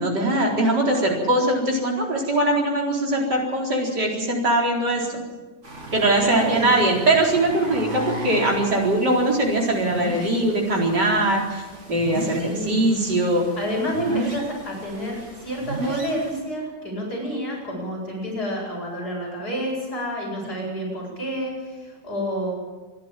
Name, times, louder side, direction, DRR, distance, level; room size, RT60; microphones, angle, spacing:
voice 1, 0.0-5.1 5.9-11.6 11.9-13.5, right 1 dB, 75° right, -1 dB, 4.9 m, -21 dB
sound 1, 5.6-16.4, right 1 dB, 45° right, 2.9 m, -35 dB
voice 2, 6.2-6.7 12.3-12.8 13.6-22.5, equal, 65° left, -3 dB, 8.7 m, -29 dB
25.5 x 11.5 x 8.9 m, 1.3 s
omnidirectional pair, 1.8 m